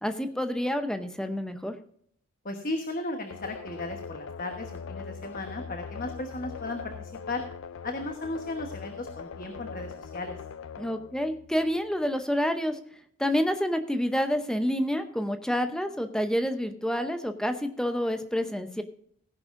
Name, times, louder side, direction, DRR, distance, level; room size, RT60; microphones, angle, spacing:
voice 1, 0.0-1.8 10.8-12.8 13.2-18.8, equal, 5° left, 7 dB, 0.7 m, -28 dB
voice 2, 2.4-7.4 7.8-10.3, left 2 dB, 40° left, 5 dB, 1.2 m, -35 dB
sound 1, 3.3-12.0, left 6 dB, 75° left, 0.5 m, -41 dB
16.5 x 10.5 x 2.6 m, 0.64 s
head